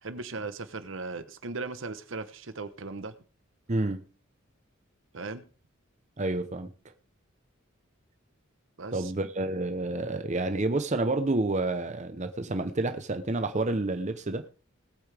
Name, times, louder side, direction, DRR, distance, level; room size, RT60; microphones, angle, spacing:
voice 1, 0.0-3.1 5.1-5.4 8.8-9.1, right 3 dB, 70° right, 1.0 m, -37 dB
voice 2, 3.7-4.0 6.2-6.7 8.9-14.4, right 2 dB, 35° right, 0.8 m, -29 dB
19.5 x 8.6 x 3.4 m
head